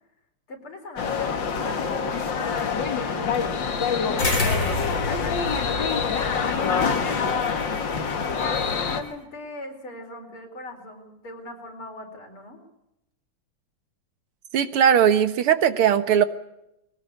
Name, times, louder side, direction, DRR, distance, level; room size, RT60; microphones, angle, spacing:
voice 1, 0.5-3.3 3.9-7.4 8.1-12.6, left 1 dB, 75° left, 3 dB, 5.4 m, -40 dB
sound 1, 1.0-9.0, left 6 dB, 60° left, 2.4 m, -25 dB
sound 2, 4.2-9.1, left 2 dB, 40° left, 5.2 m, -31 dB
voice 2, 14.5-16.2, right 8 dB, 80° right, 12 dB, 2.2 m, -19 dB
22.0 x 18.5 x 8.3 m, 0.85 s
omnidirectional pair, 2.4 m